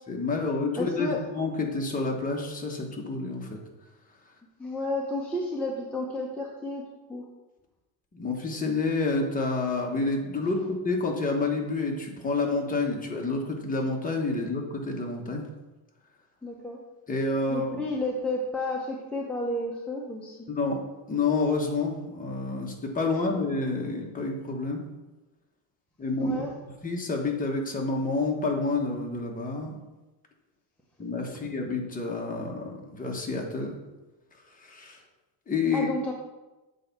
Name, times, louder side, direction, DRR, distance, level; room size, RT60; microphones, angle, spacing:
voice 1, 0.1-3.6 8.1-15.4 17.1-17.8 20.5-20.8 21.1-24.8 26.0-26.4 26.8-29.8 31.0-33.8 34.6-35.0 35.5-35.9, left 3 dB, 20° left, -1 dB, 1.2 m, -29 dB
voice 2, 0.8-1.2 4.6-6.8 7.1-7.3 16.4-16.8 17.5-20.4 26.2-26.5 35.7-36.1, left 2 dB, 5° left, -4 dB, 0.7 m, -31 dB
7.6 x 4.2 x 5.9 m, 1.1 s
cardioid pair, 165°, 43 cm